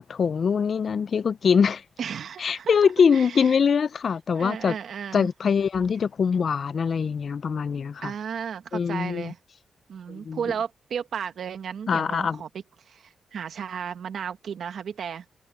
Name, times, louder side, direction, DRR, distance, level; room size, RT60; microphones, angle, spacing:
voice 1, 0.0-1.8 2.4-4.7 5.1-8.1 8.7-9.3 10.1-10.4 11.9-12.4, left 6 dB, 55° left, 0.5 m, -23 dB
voice 2, 2.0-3.6 4.3-5.3 8.0-9.4 9.9-12.5 12.9-15.3, right 7 dB, 75° right, 1.7 m, -34 dB
cardioid pair, 90°, 0 cm